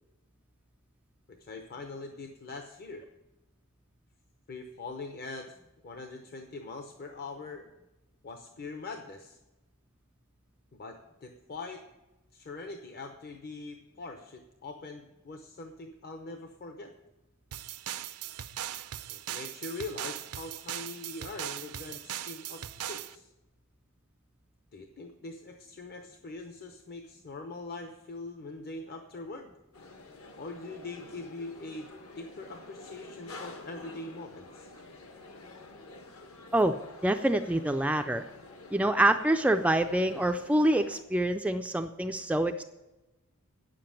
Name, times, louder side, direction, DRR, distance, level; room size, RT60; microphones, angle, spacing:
voice 1, 1.3-3.0 4.5-5.5 5.8-7.7 8.2-9.4 10.7-11.9 12.3-16.9 19.1-23.3 24.7-29.5 30.4-31.9 32.2-34.7, left 3 dB, 45° left, 5 dB, 0.8 m, -42 dB
sound 1, 17.5-23.1, right 11 dB, 85° right, 0.6 m, -39 dB
sound 2, 29.7-41.0, left 2 dB, 65° left, 1.4 m, -49 dB
voice 2, 37.0-38.2 38.7-42.6, right 1 dB, 5° right, 6 dB, 0.3 m, -26 dB
9.6 x 7.6 x 8.8 m, 1.0 s
head